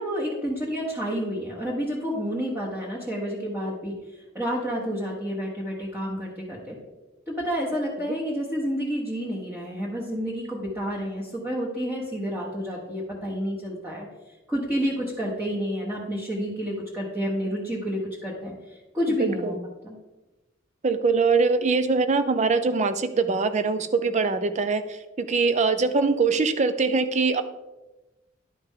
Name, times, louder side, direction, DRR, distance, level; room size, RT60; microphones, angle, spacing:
voice 1, 0.0-6.8 7.3-14.1 14.5-19.6 19.8-20.0, equal, 10° right, -8 dB, 1.3 m, -29 dB
voice 2, 19.2-19.6 20.8-27.4, right 4 dB, 35° right, 10 dB, 0.5 m, -23 dB
11.0 x 5.0 x 3.7 m, 1.1 s
head